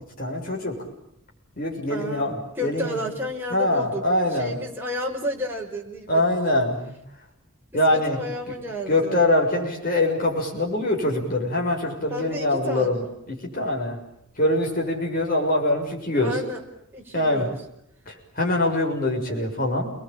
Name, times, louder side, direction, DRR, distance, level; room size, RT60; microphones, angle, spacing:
voice 1, 0.2-0.8 1.6-2.9 3.5-4.6 6.1-6.9 7.7-8.2 8.9-14.0 14.4-16.4 17.1-17.5 18.1-19.9, left 1 dB, 40° left, 0 dB, 6.8 m, -24 dB
voice 2, 1.9-2.3 2.6-4.0 4.3-6.2 7.9-9.2 12.1-13.0 16.1-16.6 16.9-17.5 19.3-19.5, left 1 dB, 10° right, -2 dB, 5.6 m, -31 dB
29.5 x 21.5 x 9.0 m, 0.77 s
head